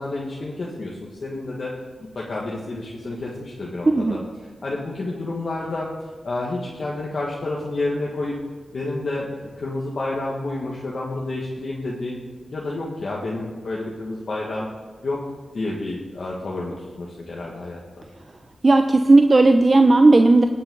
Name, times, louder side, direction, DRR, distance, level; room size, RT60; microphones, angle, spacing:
voice 1, 0.0-1.7 2.1-4.2 4.6-5.9 6.2-8.4 8.7-12.2 12.5-14.7 15.0-15.2 15.5-18.1, left 2 dB, 65° left, -4 dB, 1.9 m, -29 dB
voice 2, 3.9-4.2 18.6-20.4, right 2 dB, 45° right, 6 dB, 0.7 m, -14 dB
18.0 x 6.7 x 4.0 m, 1.4 s
cardioid pair, 45°, 0 cm